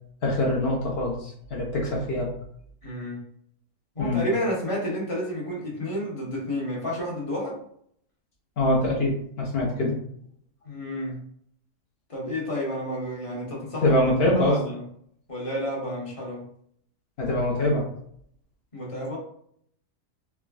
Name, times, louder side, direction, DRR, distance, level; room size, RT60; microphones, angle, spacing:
voice 1, 0.2-2.3 4.0-4.2 8.6-10.0 13.8-14.6 17.2-17.9, left 1 dB, 60° left, -2 dB, 0.8 m, -24 dB
voice 2, 2.8-3.2 3.9-7.6 10.6-11.2 12.1-14.0 14.3-14.8 15.3-16.4 18.7-19.2, equal, 30° left, -4 dB, 0.8 m, -30 dB
3.4 x 2.1 x 2.3 m, 0.65 s
omnidirectional pair, 1.4 m